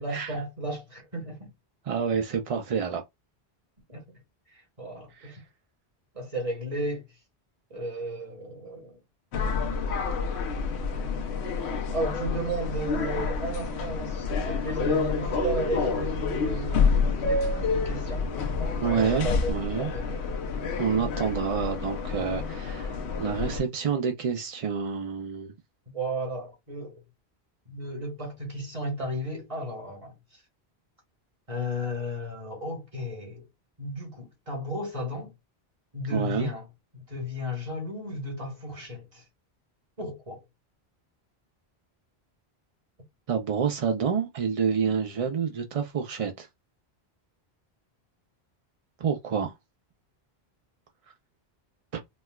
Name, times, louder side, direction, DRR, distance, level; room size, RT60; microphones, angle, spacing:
voice 1, 0.0-1.5 3.9-4.0 4.5-5.4 6.1-7.0 7.7-9.0 10.2-10.3 11.9-18.3 18.9-20.2 25.9-27.0 27.6-30.4 31.5-33.5 33.8-35.3 35.9-36.7 36.9-39.2 40.0-40.4, right 1 dB, 35° right, 1.4 m, -34 dB
voice 2, 1.9-3.0 5.2-5.3 18.8-19.9 20.8-25.5 36.1-36.5 43.3-46.5 49.0-49.5, right 6 dB, 50° right, 0.4 m, -28 dB
sound 1, 9.3-23.6, left 4 dB, 85° left, 0.9 m, -28 dB
4.2 x 2.2 x 2.2 m
omnidirectional pair, 1.1 m